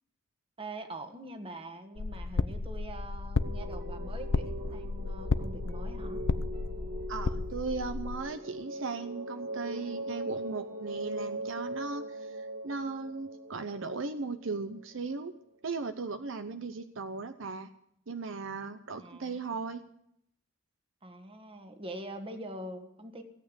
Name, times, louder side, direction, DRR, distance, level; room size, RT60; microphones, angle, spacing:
voice 1, 0.6-6.2 18.9-19.4 21.0-23.2, right 1 dB, 25° right, 6 dB, 1.6 m, -44 dB
sound 1, 2.0-8.2, left 3 dB, 80° left, 0.6 m, -33 dB
sound 2, 3.3-15.0, right 1 dB, 45° right, 1.9 m, -41 dB
voice 2, 7.1-15.4 15.6-17.7 18.1-19.8, right 4 dB, 65° right, 9 dB, 0.8 m, -37 dB
17.0 x 8.7 x 8.1 m, 0.74 s
head